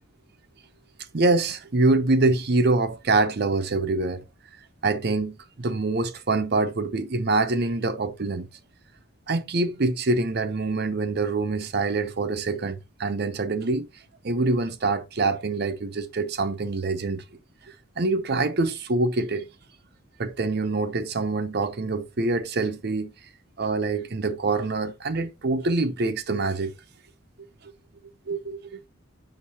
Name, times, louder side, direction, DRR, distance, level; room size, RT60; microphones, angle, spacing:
voice 1, 1.1-4.2 4.8-8.5 9.3-13.9 14.2-17.2 18.0-19.5 20.2-23.1 23.6-26.7 28.3-28.8, right 3 dB, 50° right, 0.6 m, -25 dB
6.7 x 5.5 x 2.8 m
head